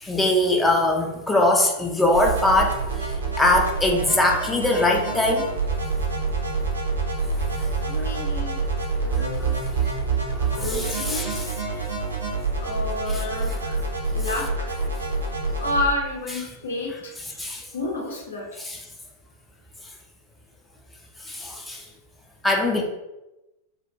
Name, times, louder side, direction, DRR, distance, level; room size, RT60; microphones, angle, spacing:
voice 1, 0.0-2.8 3.4-5.4 10.5-10.6 11.1-11.3 17.4-17.6 21.3-21.8 22.4-22.8, left 1 dB, 10° left, 0 dB, 0.3 m, -21 dB
sound 1, 2.1-15.8, right 3 dB, 75° right, 0.4 m, -27 dB
voice 2, 7.9-8.6 9.0-9.6 10.5-11.4 12.6-13.8 14.1-14.7 15.6-17.2 17.7-18.5, left 2 dB, 70° left, -1 dB, 0.5 m, -30 dB
2.2 x 2.1 x 2.6 m, 0.96 s
figure-of-eight pair, 90°, 0 cm